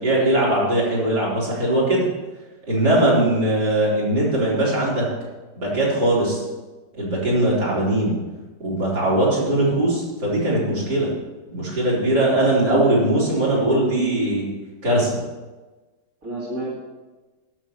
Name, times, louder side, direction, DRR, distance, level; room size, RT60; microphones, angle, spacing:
voice 1, 0.0-2.1 2.7-5.0 5.6-6.4 7.0-8.1 8.6-11.1 11.5-14.5 14.8-15.1, right 1 dB, 70° right, -7 dB, 4.8 m, -20 dB
voice 2, 13.3-14.1 16.2-16.7, right 1 dB, 50° right, -7 dB, 3.0 m, -29 dB
11.5 x 6.3 x 7.5 m, 1.2 s
omnidirectional pair, 1.9 m